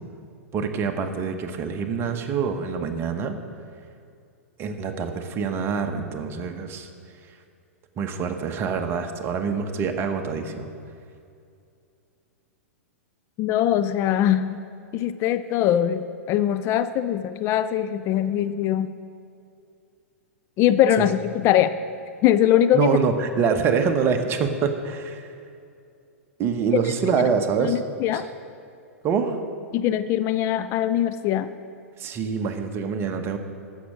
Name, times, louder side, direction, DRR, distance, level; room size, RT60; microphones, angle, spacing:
voice 1, 0.5-3.3 4.6-6.9 8.0-10.7 22.7-25.3 26.4-27.8 28.1-28.2 29.0-29.4 32.0-33.4, right 6 dB, 30° right, 6 dB, 1.1 m, -25 dB
voice 2, 13.4-14.6 14.9-18.9 20.6-21.7 22.2-22.9 27.2-27.3 27.6-28.3 29.7-31.5, left 11 dB, 35° left, 11 dB, 0.4 m, -22 dB
14.5 x 6.6 x 6.1 m, 2.5 s
figure-of-eight pair, 105°, 8 cm